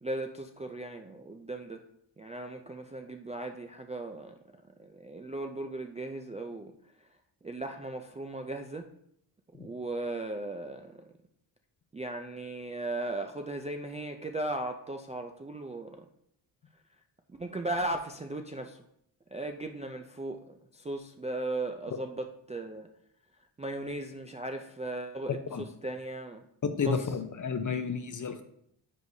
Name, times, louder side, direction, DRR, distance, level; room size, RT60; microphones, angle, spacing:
voice 1, 0.0-1.8 2.2-4.4 4.8-6.7 7.0-7.1 7.4-8.9 9.5-11.1 11.9-16.1 17.3-18.8 19.3-22.9 23.6-26.4 26.8-27.1, right 2 dB, 15° right, 4 dB, 0.3 m, -37 dB
voice 2, 26.6-28.4, left 5 dB, 40° left, 8 dB, 0.7 m, -31 dB
9.6 x 4.7 x 2.7 m, 0.71 s
wide cardioid pair, 115°, 47 cm